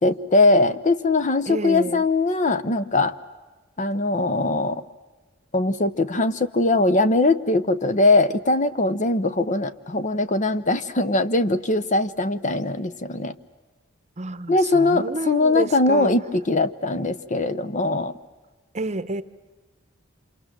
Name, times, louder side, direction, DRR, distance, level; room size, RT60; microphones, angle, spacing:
voice 1, 0.0-3.1 3.8-4.8 5.5-13.3 14.5-18.2, left 2 dB, 40° left, 0.9 m, -21 dB
voice 2, 1.5-2.0 14.2-16.1 18.7-19.2, right 2 dB, 35° right, 0.9 m, -29 dB
28.0 x 27.0 x 7.6 m
head